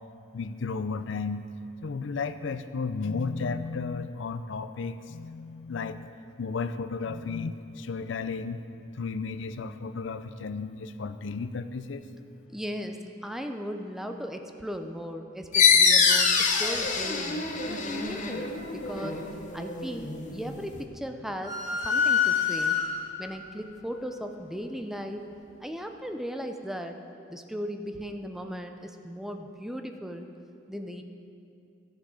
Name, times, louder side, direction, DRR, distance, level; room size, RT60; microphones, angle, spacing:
voice 1, 0.3-1.4 1.8-6.1 6.4-8.6 9.0-12.1, left 4 dB, 65° left, 11 dB, 0.5 m, -33 dB
voice 2, 12.5-19.2 19.5-21.5 21.8-22.8 23.2-25.3 25.6-27.0 27.3-30.3 30.7-31.0, equal, ahead, 5 dB, 0.5 m, -37 dB
sound 1, 15.5-20.8, left 5 dB, 40° left, 0.8 m, -25 dB
sound 2, 21.4-23.3, left 7 dB, 35° right, 2.2 m, -26 dB
14.0 x 6.6 x 4.9 m, 2.5 s
head